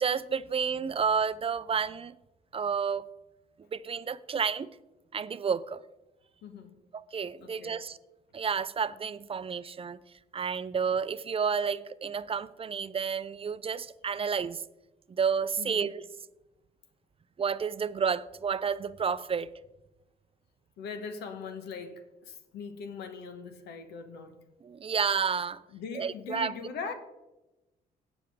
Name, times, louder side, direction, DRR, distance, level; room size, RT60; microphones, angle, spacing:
voice 1, 0.0-2.1 2.5-3.0 3.7-4.7 5.1-5.8 7.1-8.0 8.3-10.0 10.3-14.6 15.1-16.0 17.4-19.5 24.6-25.6 25.9-26.5, right 6 dB, 35° right, 0.5 m, -30 dB
voice 2, 6.4-6.8 7.4-7.8 15.6-15.9 20.8-24.4 25.7-26.9, left 5 dB, 85° left, 1.2 m, -41 dB
17.0 x 6.1 x 3.6 m
supercardioid pair, 70°, 17 cm